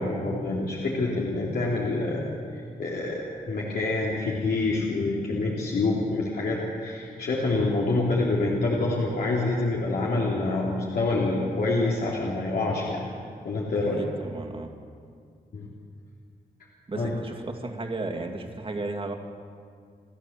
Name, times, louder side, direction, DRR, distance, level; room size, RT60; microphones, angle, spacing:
voice 1, 0.0-2.2 2.5-13.0 13.4-14.0 15.5-15.7 17.0-17.1, left 2 dB, 80° left, -5 dB, 3.2 m, -26 dB
voice 2, 14.0-14.7 16.9-19.1, right 2 dB, 35° right, 3 dB, 2.3 m, -34 dB
29.5 x 13.0 x 7.4 m, 2.2 s
wide cardioid pair, 105°, 16 cm